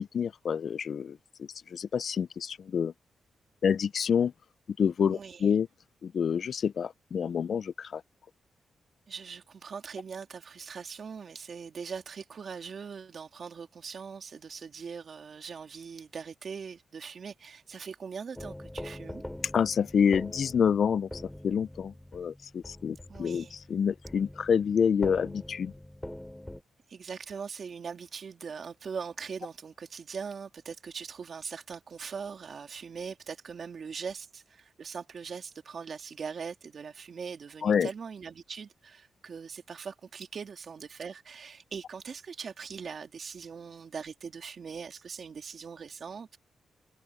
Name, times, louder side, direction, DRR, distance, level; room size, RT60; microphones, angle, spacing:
voice 1, 0.0-2.9 3.6-4.3 4.8-5.7 6.0-8.0 19.5-25.7 37.6-37.9, left 7 dB, 60° left, 0.4 m, -28 dB
voice 2, 5.1-5.4 9.1-19.2 23.1-23.6 26.9-46.4, right 6 dB, 55° right, 2.6 m, -41 dB
Soft metal gong, 18.4-26.6, left 1 dB, 5° left, 3.8 m, -43 dB
cardioid pair, 105°, 0 cm